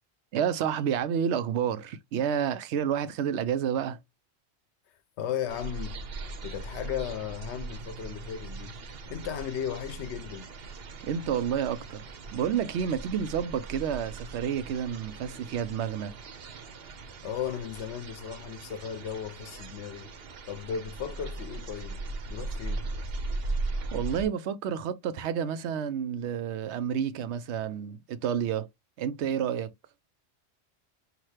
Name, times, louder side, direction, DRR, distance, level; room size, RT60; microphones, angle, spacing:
voice 1, 0.3-4.0 11.0-12.0 12.3-16.1 23.9-28.7 29.0-29.7, right 8 dB, 85° right, 0.9 m, -30 dB
voice 2, 5.2-6.0 6.4-8.8 9.1-10.5 17.2-20.1 20.5-22.0 22.3-22.9, left 8 dB, 85° left, 0.9 m, -35 dB
sound 1, 5.5-24.3, right 3 dB, 65° right, 0.9 m, -39 dB
5.9 x 2.4 x 3.2 m
omnidirectional pair, 1.1 m